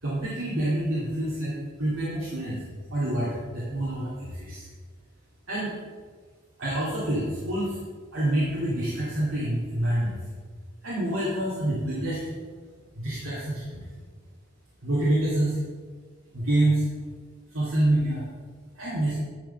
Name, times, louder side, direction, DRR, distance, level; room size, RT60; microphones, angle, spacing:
voice 1, 0.0-2.6 2.9-4.7 5.5-5.7 6.6-7.8 8.1-10.2 10.8-12.3 13.0-13.9 14.8-15.6 16.3-16.8 17.5-18.2 18.8-19.1, right 1 dB, 80° right, -7 dB, 2.3 m, -27 dB
10.5 x 5.1 x 5.5 m, 1.5 s
head